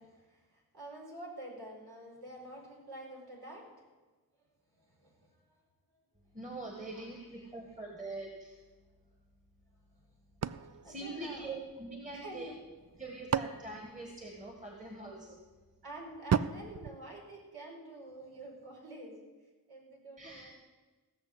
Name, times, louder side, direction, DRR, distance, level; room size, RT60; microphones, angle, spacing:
voice 1, 0.0-4.0 4.7-5.6 6.8-7.8 9.9-10.0 10.8-11.5 12.1-12.5 15.8-20.5, right 1 dB, 75° right, -2 dB, 4.8 m, -48 dB
voice 2, 6.3-8.6 10.8-12.5 13.0-15.4 20.2-20.5, right 2 dB, 20° right, 2 dB, 2.0 m, -43 dB
sound 1, 10.4-12.0 12.8-14.8 16.3-17.9, right 7 dB, 45° right, 0.5 m, -36 dB
17.0 x 6.6 x 7.9 m, 1.3 s
cardioid pair, 65°, 38 cm